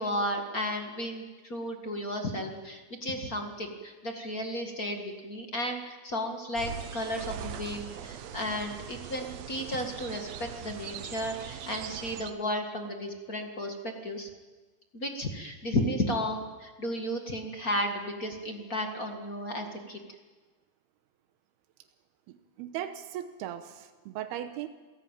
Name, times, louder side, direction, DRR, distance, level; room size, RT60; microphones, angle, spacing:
voice 1, 0.0-14.3 14.9-20.0, left 1 dB, 35° left, 4 dB, 1.6 m, -33 dB
sound 1, 6.6-12.3, right 8 dB, 65° right, 1.7 m, -41 dB
voice 2, 22.3-24.7, right 11 dB, 85° right, 8 dB, 3.0 m, -38 dB
28.0 x 17.5 x 9.1 m, 1.3 s
omnidirectional pair, 4.5 m